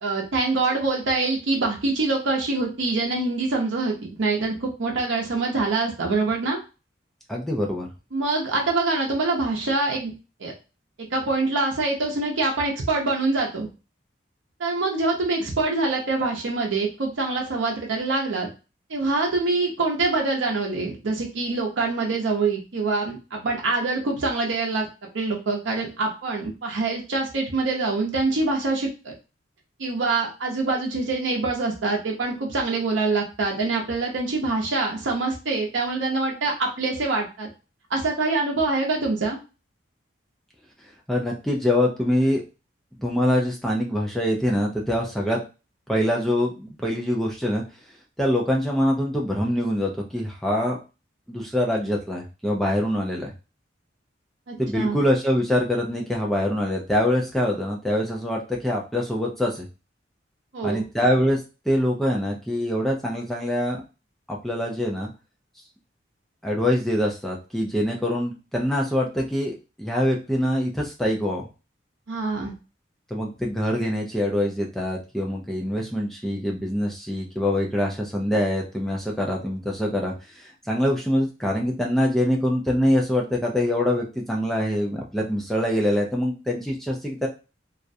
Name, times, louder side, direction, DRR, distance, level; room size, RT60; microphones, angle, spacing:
voice 1, 0.0-6.6 8.1-10.1 10.4-10.5 11.0-13.7 14.6-18.5 18.9-24.9 25.1-29.1 29.8-37.5 37.9-39.4 54.5-55.0 60.5-60.8 72.1-72.5, right 3 dB, 80° right, -1 dB, 0.6 m, -25 dB
voice 2, 7.3-7.9 41.1-42.4 43.0-45.4 45.9-47.6 48.2-50.8 51.3-53.3 54.6-59.6 60.6-61.4 61.7-63.8 64.3-65.1 66.4-71.5 73.1-87.3, left 1 dB, ahead, -1 dB, 0.3 m, -24 dB
2.3 x 2.1 x 2.6 m, 0.31 s
head